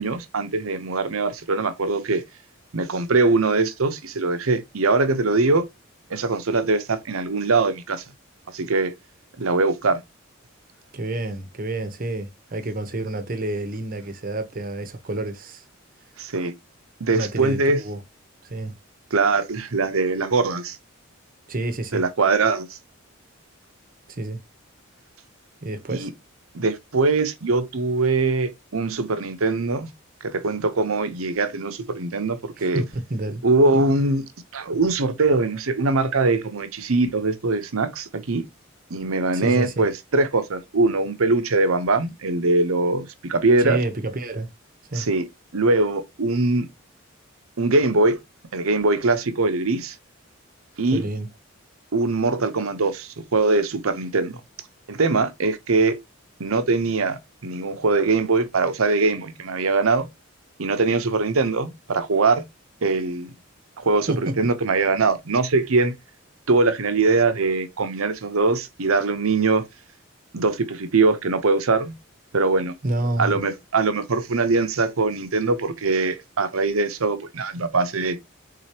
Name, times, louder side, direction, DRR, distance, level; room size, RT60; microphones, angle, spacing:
voice 1, 0.0-2.2 2.7-5.6 6.1-8.0 8.5-8.9 9.4-10.0 16.2-16.5 17.0-17.8 19.1-20.8 21.9-22.8 25.9-26.1 26.5-29.9 30.2-32.8 33.4-34.3 34.5-38.5 38.9-43.8 44.9-45.2 45.5-46.7 47.6-48.2 48.5-50.0 50.8-51.0 51.9-54.4 54.9-56.0 56.4-60.1 60.6-62.4 62.8-63.3 63.8-65.9 66.5-69.7 70.3-72.0 72.3-72.7 73.2-78.2, right 3 dB, 90° right, 0.8 m, -22 dB
voice 2, 10.9-15.6 17.1-18.0 18.4-18.7 21.5-22.0 24.1-24.4 25.6-26.1 32.6-33.4 39.3-39.9 43.6-44.5 44.9-45.1 50.9-51.3 64.1-64.3 72.8-73.4, right 2 dB, 40° right, 0.8 m, -29 dB
4.9 x 3.8 x 2.8 m
head